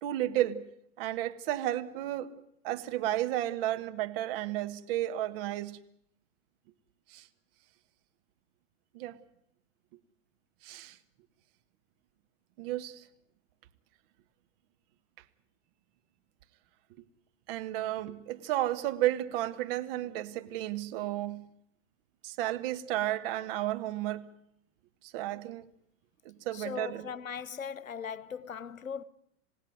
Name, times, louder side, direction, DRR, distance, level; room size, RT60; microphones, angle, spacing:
voice 1, 0.0-0.6 1.0-2.3 2.6-5.8 7.1-7.2 8.9-9.2 10.6-11.0 12.6-13.0 17.5-21.4 22.2-24.3 25.1-25.6 26.2-27.0, right 14 dB, 45° right, 1.7 m, -32 dB
voice 2, 26.5-29.0, left 7 dB, 75° left, 1.1 m, -39 dB
28.0 x 17.0 x 9.2 m
figure-of-eight pair, 105°, 40 cm